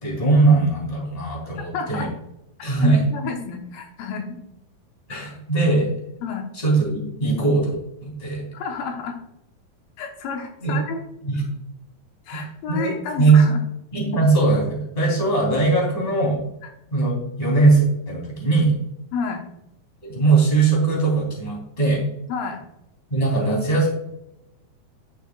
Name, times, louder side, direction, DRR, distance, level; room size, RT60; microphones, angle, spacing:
voice 1, 0.0-2.1 2.6-3.0 5.1-5.9 6.5-7.7 8.0-8.4 10.6-10.8 11.2-11.4 12.3-13.4 13.9-16.4 16.9-18.7 20.0-22.0 23.1-23.9, right 3 dB, 10° left, -2 dB, 2.7 m, -20 dB
voice 2, 1.7-2.1 2.8-4.4 6.2-6.5 8.5-9.2 10.0-11.0 12.3-13.6 19.1-19.4 22.3-22.6, left 5 dB, 75° left, 2 dB, 2.7 m, -30 dB
12.5 x 6.6 x 2.3 m, 0.84 s
omnidirectional pair, 4.3 m